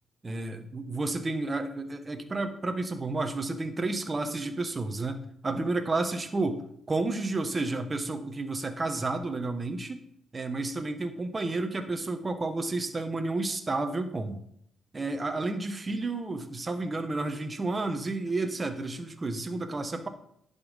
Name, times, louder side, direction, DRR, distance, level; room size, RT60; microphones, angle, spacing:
voice 1, 0.2-10.0 10.3-14.4 14.9-20.1, right 2 dB, 25° right, 6 dB, 1.2 m, -31 dB
11.0 x 5.6 x 5.5 m, 0.72 s
cardioid pair, 90°, 0 cm